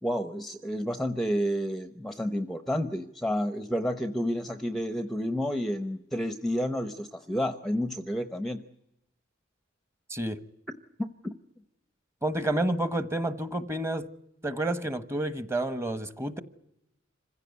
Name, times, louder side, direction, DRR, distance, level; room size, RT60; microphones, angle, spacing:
voice 1, 0.0-8.6 11.0-11.3, equal, ahead, 8 dB, 0.8 m, -30 dB
voice 2, 12.2-14.1 14.4-16.4, right 1 dB, 15° right, 11 dB, 1.2 m, -29 dB
26.0 x 16.0 x 9.6 m, 0.84 s
head